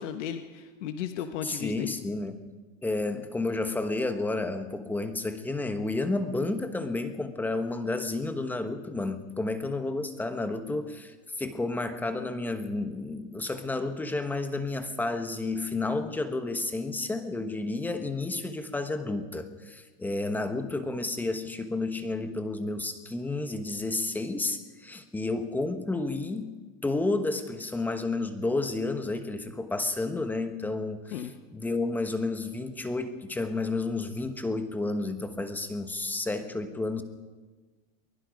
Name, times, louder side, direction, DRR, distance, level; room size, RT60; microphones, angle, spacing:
voice 1, 0.0-1.9 31.1-31.3, left 9 dB, 70° left, 7 dB, 1.5 m, -35 dB
voice 2, 1.4-2.3 2.8-26.5 26.8-37.0, left 2 dB, 5° left, 8 dB, 1.1 m, -31 dB
23.0 x 21.5 x 5.2 m, 1.3 s
supercardioid pair, 165°, 37 cm